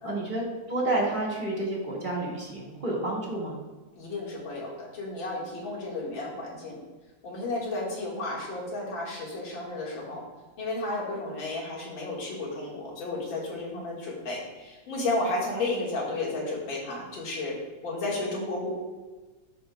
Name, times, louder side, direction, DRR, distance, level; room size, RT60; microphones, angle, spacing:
voice 1, 0.0-3.5, right 2 dB, 25° right, -4 dB, 2.0 m, -30 dB
voice 2, 3.9-6.8 7.2-10.2 10.6-17.5 17.8-18.7, left 2 dB, 85° left, -4 dB, 2.6 m, -32 dB
12.0 x 6.4 x 2.3 m, 1.2 s
omnidirectional pair, 2.0 m